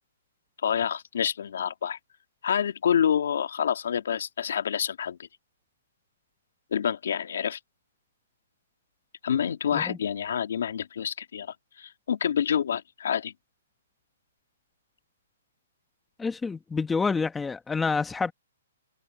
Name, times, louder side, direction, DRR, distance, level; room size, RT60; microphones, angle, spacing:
voice 1, 0.6-2.0 2.4-5.3 6.7-7.6 9.2-13.3, left 8 dB, 70° left, 2.6 m, -27 dB
voice 2, 16.2-18.3, left 4 dB, 5° left, 1.1 m, -28 dB
hypercardioid pair, 155°, 0 cm